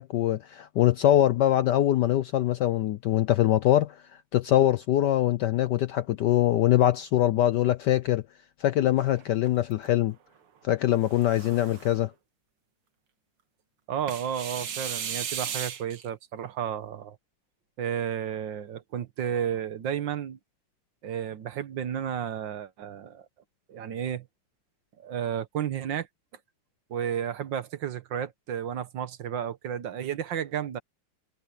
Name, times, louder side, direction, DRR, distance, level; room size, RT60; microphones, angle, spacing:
voice 1, 0.0-4.0 4.3-8.2 8.6-10.1 10.6-12.1, left 12 dB, 70° left, 1.0 m, -23 dB
sound 1, 9.0-9.9 10.9-12.0 14.1-16.1, right 8 dB, 85° right, 2.4 m, -36 dB
voice 2, 13.9-17.2 17.8-20.4 21.0-23.3 23.7-24.3 25.0-26.1 26.9-30.8, right 9 dB, 65° right, 1.6 m, -32 dB
omnidirectional pair, 2.4 m